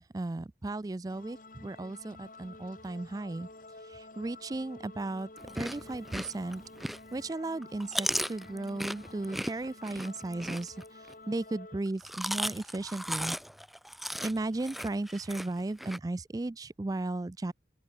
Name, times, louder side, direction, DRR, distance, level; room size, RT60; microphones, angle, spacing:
voice 1, 0.1-3.5 3.9-5.3 5.5-6.6 7.1-10.8 11.3-13.4 14.2-17.5, right 2 dB, 20° right, 0.4 m, -35 dB
sound 1, 1.1-11.8, left 2 dB, 50° left, 4.0 m, -51 dB
Chewing mastication, 5.4-7.2 7.6-11.1 11.9-16.0, equal, ahead, 0.8 m, -36 dB
open air
head